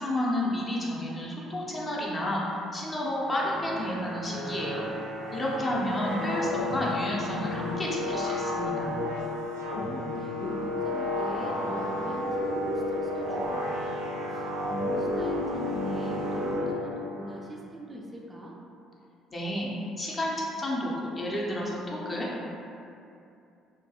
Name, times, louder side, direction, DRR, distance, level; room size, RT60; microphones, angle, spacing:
voice 1, 0.0-4.9 5.3-8.9 19.3-19.7 20.0-22.3, left 1 dB, 30° left, -4 dB, 0.6 m, -31 dB
sound 1, 3.2-17.3, left 1 dB, 85° right, 0.5 m, -32 dB
voice 2, 9.7-14.0 14.3-18.6, equal, 20° right, -2 dB, 0.3 m, -41 dB
2.3 x 2.2 x 2.8 m, 2.6 s
hypercardioid pair, 55°, 0 cm